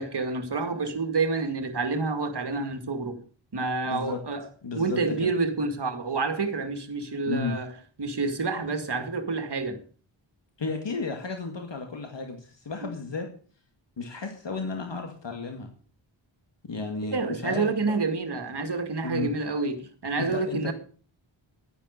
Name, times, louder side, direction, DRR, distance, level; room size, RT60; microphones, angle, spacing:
voice 1, 0.0-3.2 3.5-4.5 4.7-7.7 8.0-9.8 17.1-20.7, right 3 dB, 55° right, 2.1 m, -28 dB
voice 2, 3.9-4.2 4.6-5.3 7.3-7.6 10.6-13.3 14.0-15.7 16.6-17.8 19.0-19.3 20.2-20.7, left 4 dB, 65° left, 2.2 m, -33 dB
11.0 x 10.0 x 6.7 m
wide cardioid pair, 105°, 48 cm